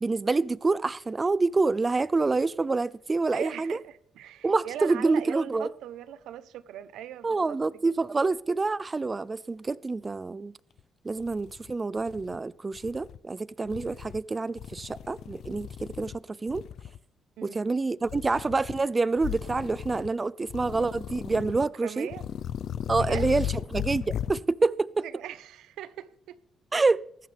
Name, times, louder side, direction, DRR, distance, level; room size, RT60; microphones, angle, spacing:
voice 1, 0.0-3.8 4.4-5.7 7.2-10.5 11.0-16.6 17.4-22.1 22.9-25.0 26.7-27.0, right 3 dB, 25° right, 0.5 m, -27 dB
voice 2, 3.3-8.1 17.4-17.7 21.5-22.2 22.9-23.4 25.0-26.4, right 11 dB, 85° right, 0.9 m, -40 dB
sound 1, 10.8-10.9 11.2-12.4 12.7-13.2 13.6-14.2 14.6-16.2 16.5-17.0 18.0-18.8 19.2-20.1 20.5-21.7 22.1-24.4, left 10 dB, 70° left, 0.7 m, -36 dB
19.0 x 14.5 x 3.5 m
cardioid pair, 90°, 0 cm